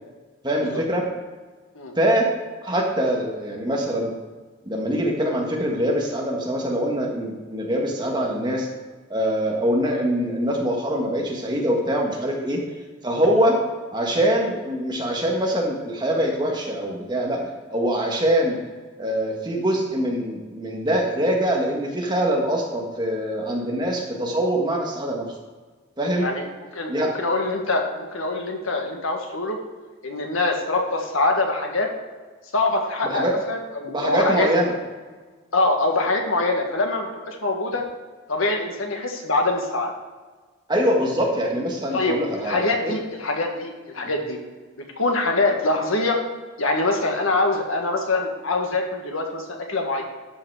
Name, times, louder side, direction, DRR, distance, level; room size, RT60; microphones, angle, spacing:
voice 1, 0.4-1.1 2.0-2.3 2.6-4.1 4.6-8.7 9.1-12.6 13.0-13.6 13.9-17.4 17.7-18.6 19.0-25.3 26.0-26.3 26.9-27.1 33.0-33.3 33.8-34.8 40.7-42.9, equal, 20° right, -1 dB, 1.6 m, -23 dB
voice 2, 26.7-29.6 30.0-31.9 32.5-34.5 35.5-37.8 38.3-39.9 41.9-44.4 44.8-46.2 46.6-50.0, left 2 dB, 85° left, 2 dB, 1.7 m, -24 dB
12.0 x 5.9 x 4.8 m, 1.4 s
head